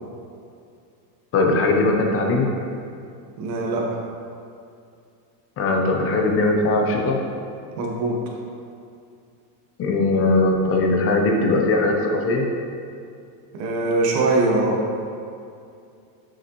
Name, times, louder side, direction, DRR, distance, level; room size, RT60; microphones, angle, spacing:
voice 1, 1.3-2.6 5.6-7.2 9.8-12.5, left 2 dB, 30° left, 1 dB, 0.8 m, -20 dB
voice 2, 3.4-3.8 7.8-8.2 13.5-14.8, right 2 dB, 85° right, -1 dB, 1.4 m, -22 dB
7.0 x 6.4 x 3.1 m, 2.4 s
supercardioid pair, 140°, 49 cm